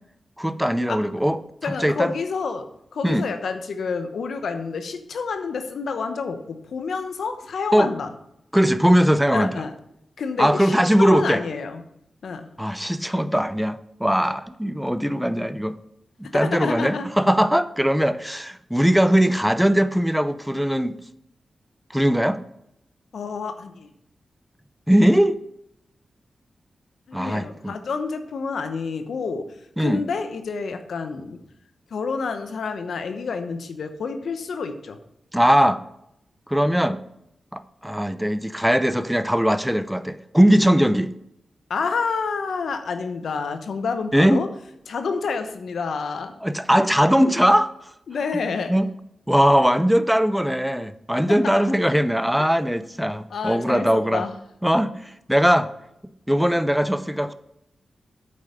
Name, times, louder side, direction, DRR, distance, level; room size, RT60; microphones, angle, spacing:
voice 1, 0.4-2.1 3.0-3.3 7.7-7.9 8.5-9.5 10.4-11.4 12.6-15.7 16.3-21.0 21.9-22.4 24.9-25.4 27.1-27.8 29.8-30.0 35.3-35.8 36.5-37.0 37.5-41.1 44.1-44.4 46.4-47.7 48.7-48.9 49.3-54.2 54.6-54.9 55.3-55.7 56.3-57.3, equal, 5° right, 13 dB, 0.6 m, -20 dB
voice 2, 1.6-8.1 9.3-9.7 10.2-11.8 12.2-12.5 16.2-17.1 23.1-23.9 27.1-29.5 29.8-31.4 31.9-35.0 41.7-44.5 44.9-46.3 48.1-48.7 51.3-51.7 52.4-52.5 53.3-54.3, left 5 dB, 80° left, 8 dB, 0.9 m, -29 dB
8.6 x 4.8 x 6.7 m, 0.78 s
cardioid pair, 45°, 0 cm